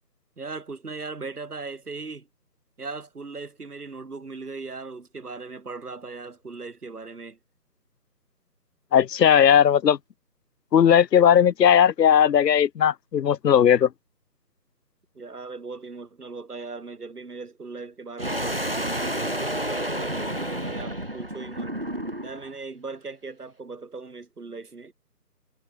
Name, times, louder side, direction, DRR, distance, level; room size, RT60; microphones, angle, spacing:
voice 1, 0.4-2.3 2.8-7.4 15.2-21.8 22.2-24.9, right 3 dB, 65° right, 1.9 m, -38 dB
voice 2, 8.9-10.0 10.7-13.9, left 9 dB, 80° left, 0.5 m, -17 dB
sound 1, 18.2-22.5, right 1 dB, 40° right, 0.5 m, -30 dB
figure-of-eight pair, 155°, 49 cm